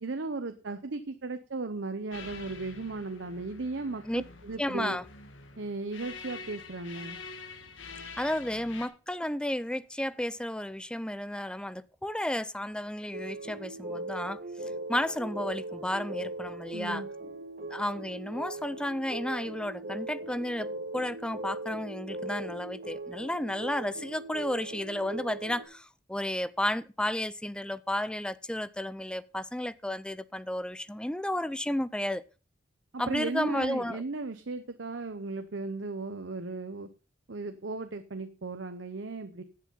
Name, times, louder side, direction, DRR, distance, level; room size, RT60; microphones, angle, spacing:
voice 1, 0.0-5.0 5.6-7.2 16.7-17.1 32.9-36.9 37.3-39.4, right 3 dB, 70° right, 0.8 m, -36 dB
sound 1, 2.1-8.9, left 4 dB, 80° left, 1.8 m, -46 dB
voice 2, 4.6-5.0 8.2-17.1 17.7-32.2 33.0-34.0, left 1 dB, 5° left, 0.4 m, -33 dB
sound 2, 13.1-25.6, right 2 dB, 50° right, 2.5 m, -39 dB
10.5 x 7.6 x 5.5 m
head